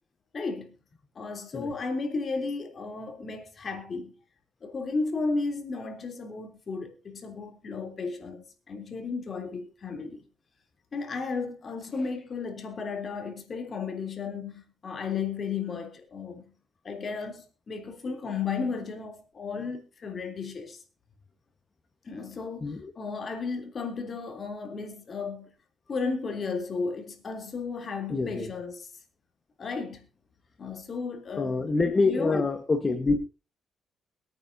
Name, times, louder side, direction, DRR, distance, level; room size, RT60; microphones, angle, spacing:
voice 1, 0.3-0.7 1.1-4.1 4.6-10.2 10.9-16.5 16.8-20.8 22.0-25.5 25.9-28.9 29.6-30.0 30.6-32.4, left 4 dB, 45° left, 3.3 m, -34 dB
voice 2, 22.6-22.9 28.1-28.5 31.4-33.2, left 3 dB, 30° left, 1.4 m, -26 dB
22.0 x 9.5 x 2.8 m
cardioid pair, 90°, 0 cm